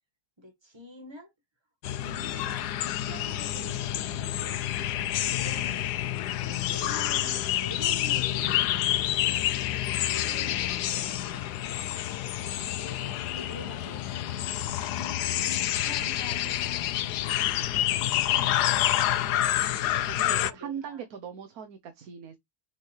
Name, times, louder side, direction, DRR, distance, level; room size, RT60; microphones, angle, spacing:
voice 1, 0.4-1.3 2.0-4.6 5.2-9.6 10.1-12.0 12.4-14.3 15.7-18.6 20.2-21.0, equal, 15° right, 1.6 m, -47 dB
sound 1, 1.8-20.5, left 12 dB, 90° left, 1.2 m, -28 dB
voice 2, 19.0-22.4, right 7 dB, 70° right, 1.4 m, -41 dB
6.6 x 4.7 x 3.2 m
omnidirectional pair, 1.7 m